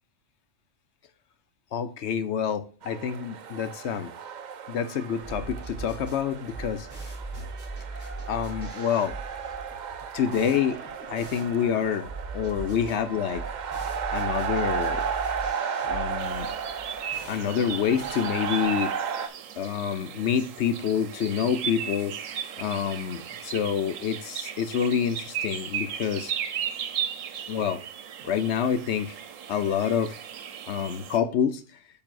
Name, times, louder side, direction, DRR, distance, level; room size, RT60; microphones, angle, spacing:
voice 1, 1.7-4.1 4.7-6.9 7.4-7.5 8.3-9.2 10.1-10.8 11.1-12.1 12.3-13.4 14.1-15.0 15.8-16.5 17.3-18.9 19.6-22.1 22.6-26.3 27.5-27.8 28.2-29.2 29.5-30.2 30.7-31.6, left 8 dB, 65° left, 0.9 m, -27 dB
sound 1, 2.8-19.3, right 6 dB, 55° right, 0.5 m, -34 dB
sound 2, 5.2-18.8, right 3 dB, 15° left, 4.2 m, -40 dB
sound 3, 16.2-31.2, right 8 dB, 85° right, 1.1 m, -36 dB
9.1 x 5.4 x 2.5 m
omnidirectional pair, 1.3 m